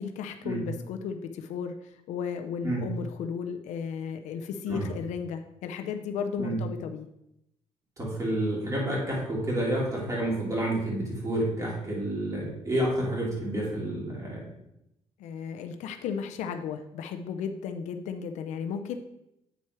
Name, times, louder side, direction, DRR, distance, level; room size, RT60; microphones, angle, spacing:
voice 1, 0.0-7.1 15.2-19.0, left 6 dB, 90° left, 7 dB, 0.6 m, -34 dB
voice 2, 8.0-14.4, right 1 dB, 30° right, -4 dB, 3.1 m, -29 dB
8.0 x 4.3 x 4.7 m, 0.83 s
cardioid pair, 95°, 12 cm